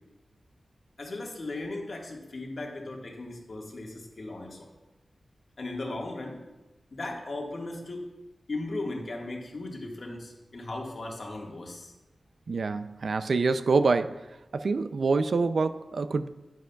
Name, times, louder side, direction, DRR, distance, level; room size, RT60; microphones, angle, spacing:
voice 1, 1.0-4.7 5.6-6.4 6.9-8.1 8.5-11.9, left 2 dB, 55° left, -1 dB, 1.6 m, -37 dB
voice 2, 12.5-14.2 14.5-16.3, right 4 dB, 65° right, 11 dB, 0.4 m, -26 dB
10.5 x 9.5 x 2.3 m, 1.0 s
wide cardioid pair, 100°, 0 cm